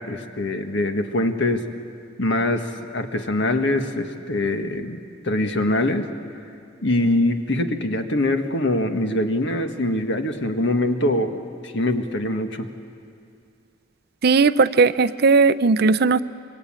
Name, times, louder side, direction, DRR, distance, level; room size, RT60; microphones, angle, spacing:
voice 1, 0.0-1.7 2.2-6.1 6.8-12.7, left 1 dB, 65° left, 6 dB, 1.7 m, -23 dB
voice 2, 14.2-16.2, right 4 dB, 55° right, 14 dB, 0.5 m, -17 dB
26.0 x 23.5 x 8.8 m, 2.4 s
head